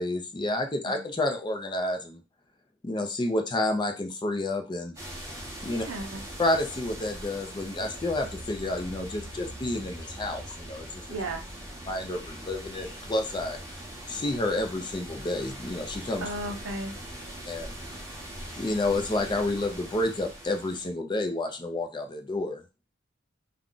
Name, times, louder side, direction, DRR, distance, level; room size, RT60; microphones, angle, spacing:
voice 1, 0.0-2.2 2.8-4.9 5.6-5.8 6.4-11.0 11.9-13.6 14.1-16.3 17.5-17.7 18.5-22.6, left 2 dB, 25° left, 5 dB, 0.4 m, -30 dB
sound 1, 5.0-20.9, right 1 dB, 15° right, 0.8 m, -41 dB
voice 2, 5.7-6.3 11.1-11.4 16.2-16.9, right 2 dB, 75° right, 3 dB, 0.7 m, -35 dB
2.4 x 2.1 x 3.7 m, 0.29 s
head